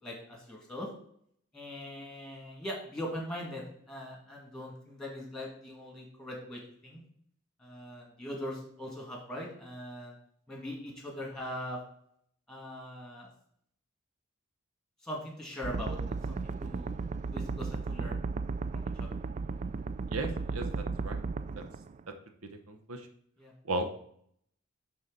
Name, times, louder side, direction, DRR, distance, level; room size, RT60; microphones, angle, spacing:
voice 1, 0.0-0.9 1.5-7.0 7.6-10.1 10.5-11.8 12.5-13.3 15.0-16.9 17.3-18.1 18.7-19.1 23.4-23.5, left 1 dB, 5° left, -1 dB, 2.2 m, -41 dB
sound 1, 15.6-22.1, right 4 dB, 35° right, 0.3 m, -35 dB
voice 2, 20.1-21.2 22.7-23.1 23.7-23.9, right 2 dB, 80° right, 7 dB, 0.9 m, -35 dB
11.5 x 3.9 x 4.0 m, 0.66 s
head